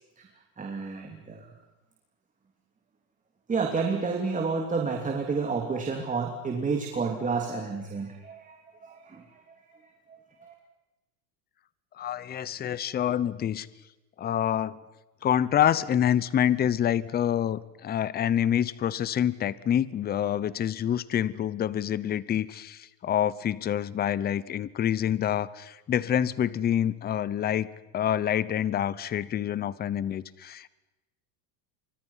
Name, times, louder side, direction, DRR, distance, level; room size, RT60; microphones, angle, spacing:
voice 1, 0.6-1.5 3.5-9.4 9.8-10.5, right 4 dB, 15° right, 3 dB, 3.1 m, -30 dB
voice 2, 12.0-13.7 14.2-14.8 15.2-27.7 27.9-30.7, left 10 dB, 20° left, 19 dB, 0.8 m, -27 dB
30.0 x 25.5 x 5.7 m, 1.0 s
supercardioid pair, 145°, 48 cm